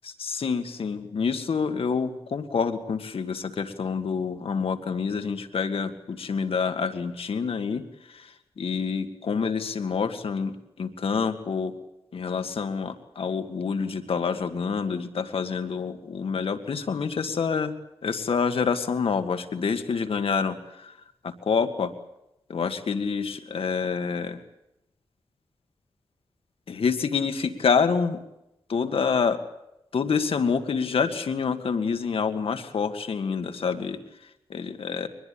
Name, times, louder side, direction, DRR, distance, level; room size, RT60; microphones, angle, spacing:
voice 1, 0.0-11.7 12.1-17.7 18.0-20.9 21.2-21.9 22.5-24.4 26.7-28.2 28.7-29.4 29.9-34.0 34.5-35.1, left 5 dB, 80° left, 8 dB, 1.9 m, -27 dB
23.0 x 20.5 x 8.6 m, 0.86 s
cardioid pair, 70°, 9 cm